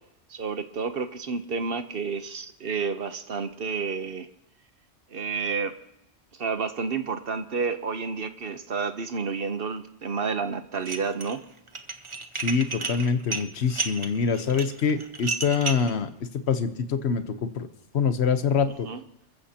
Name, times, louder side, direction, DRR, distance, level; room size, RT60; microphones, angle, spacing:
voice 1, 0.3-4.3 5.1-5.7 6.4-11.4 18.9-19.0, right 5 dB, 55° right, 10 dB, 1.0 m, -30 dB
Dishes pots and pans, 10.7-11.4 11.7-15.9, right 4 dB, 30° right, 0.7 m, -32 dB
voice 2, 12.3-17.7 17.9-18.9, left 6 dB, 65° left, 9 dB, 1.2 m, -25 dB
28.0 x 15.0 x 2.9 m, 0.85 s
omnidirectional pair, 1.2 m